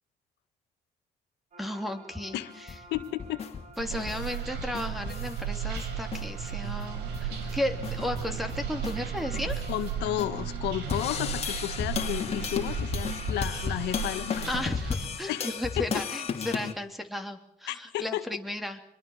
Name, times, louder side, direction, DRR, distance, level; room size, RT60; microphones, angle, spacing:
sound 1, 1.5-14.6, right 1 dB, 45° right, 4.9 m, -50 dB
voice 1, 1.6-2.7 3.8-9.6 14.5-18.8, left 1 dB, ahead, 8 dB, 3.0 m, -34 dB
sound 2, 2.5-5.4 5.8-6.2 6.6-6.7 7.0-10.2 10.9-16.7, left 6 dB, 40° left, 2.9 m, -34 dB
voice 2, 2.9-3.4 9.7-14.5 15.3-15.5 15.8-16.0 17.7-18.2, left 14 dB, 85° left, 10 dB, 1.7 m, -32 dB
sound 3, 3.8-15.1, right 8 dB, 90° right, 4.9 m, -35 dB
25.5 x 22.0 x 7.2 m, 0.70 s
cardioid pair, 110°, 17 cm